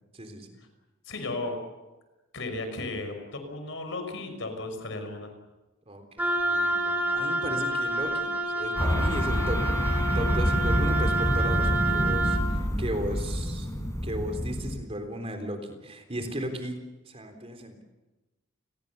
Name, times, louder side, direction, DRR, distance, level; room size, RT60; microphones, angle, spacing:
voice 1, 0.1-0.5 5.9-13.7 14.0-16.8 17.1-17.8, equal, 30° right, 5 dB, 3.7 m, -36 dB
voice 2, 1.0-1.6 2.3-5.3, left 2 dB, 65° left, 6 dB, 5.6 m, -35 dB
Wind instrument woodwind instrument, 6.2-12.5, right 2 dB, 10° right, 3.7 m, -28 dB
sound 1, 8.8-14.8, equal, 15° left, 4.5 m, -27 dB
30.0 x 21.5 x 7.0 m, 1.1 s
head